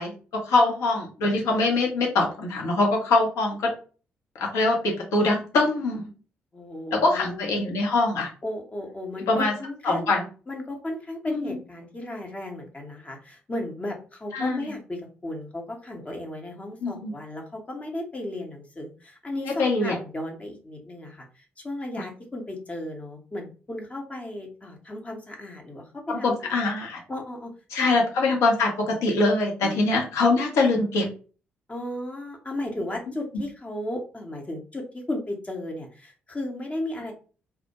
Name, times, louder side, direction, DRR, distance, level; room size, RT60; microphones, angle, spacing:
voice 1, 0.0-3.7 4.4-6.1 6.9-8.3 9.3-9.5 9.8-10.2 11.3-11.6 14.3-14.7 16.8-17.1 19.6-20.0 26.1-27.0 27.7-31.0, left 2 dB, 60° left, 0 dB, 0.7 m, -23 dB
voice 2, 6.5-7.6 8.4-10.1 10.5-26.6 27.1-28.0 29.6-29.9 31.7-37.1, left 1 dB, 25° left, 2 dB, 0.7 m, -35 dB
2.2 x 2.1 x 2.8 m, 0.37 s
figure-of-eight pair, 40°, 6 cm